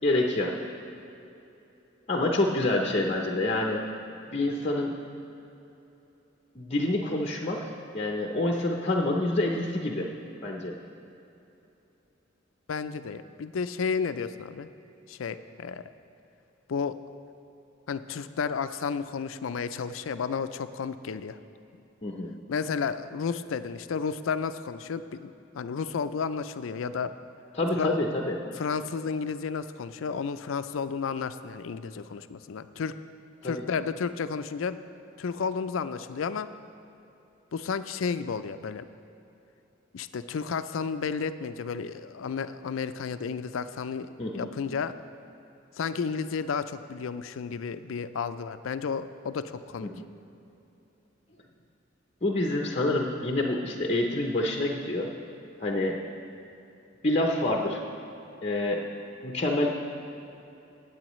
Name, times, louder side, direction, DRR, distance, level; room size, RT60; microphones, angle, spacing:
voice 1, 0.0-0.6 2.1-3.8 4.3-5.0 6.6-10.1 10.4-10.8 22.0-22.3 27.5-28.4 33.4-33.6 44.2-44.5 49.8-50.0 52.2-55.1 55.6-56.0 57.0-57.8 58.4-58.8 59.2-59.7, left 2 dB, 35° left, 0 dB, 0.7 m, -27 dB
voice 2, 12.7-14.7 15.1-15.8 16.7-16.9 17.9-21.4 22.5-27.1 27.8-28.0 28.6-33.0 33.4-34.8 35.2-36.5 37.5-38.8 39.9-44.9 45.8-49.9, left 5 dB, 80° left, 12 dB, 0.4 m, -32 dB
16.5 x 8.7 x 3.1 m, 2.9 s
head